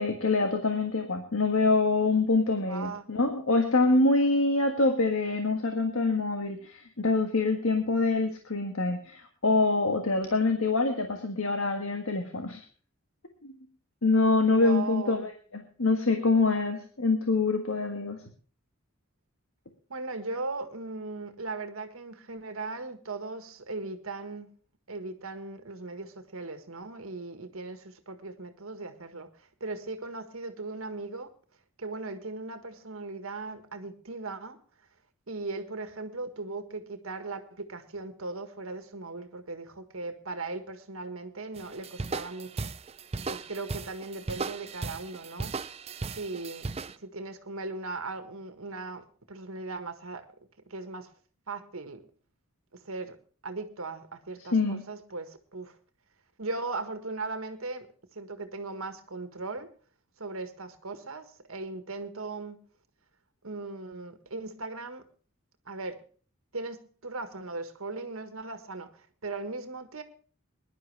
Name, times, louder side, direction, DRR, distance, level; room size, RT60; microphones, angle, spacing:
voice 1, 0.0-12.6 13.4-13.5 14.0-18.2 54.5-54.8, left 3 dB, 85° left, 5 dB, 1.6 m, -25 dB
voice 2, 2.6-3.1 14.4-15.3 19.9-24.5 24.9-31.3 31.8-34.6 35.3-42.7 43.2-45.6 46.1-46.7 47.0-50.3 50.7-51.1 51.5-52.1 52.7-53.2 53.4-55.8 56.4-59.7 60.2-62.6 63.4-65.0 65.7-66.0 66.5-70.0, right 3 dB, 85° right, 8 dB, 1.6 m, -38 dB
sound 1, 41.6-47.0, right 4 dB, 30° right, 0.5 m, -36 dB
21.0 x 11.0 x 3.4 m, 0.40 s
head